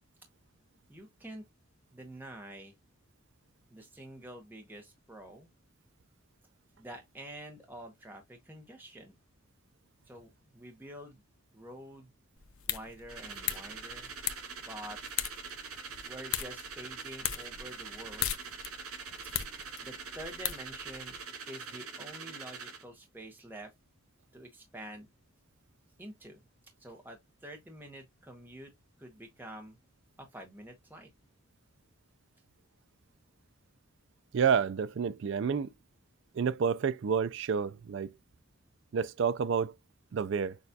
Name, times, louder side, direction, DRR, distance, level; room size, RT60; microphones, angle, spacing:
voice 1, 0.9-1.4 1.9-2.7 3.7-5.5 6.8-9.1 10.1-11.2 11.5-12.1 12.7-14.1 14.6-15.0 16.1-18.3 19.2-19.5 19.8-21.2 21.5-23.7 24.3-25.1 26.0-26.4 26.8-28.7 29.0-29.8 30.2-31.1, right 1 dB, 10° right, 0.7 m, -47 dB
sound 1, 12.4-21.2, left 11 dB, 75° left, 0.6 m, -39 dB
sound 2, 13.1-22.8, right 5 dB, 85° right, 2.5 m, -44 dB
voice 2, 34.3-35.7 36.3-38.1 38.9-39.7 40.1-40.6, right 6 dB, 55° right, 0.3 m, -29 dB
6.4 x 2.3 x 2.7 m
head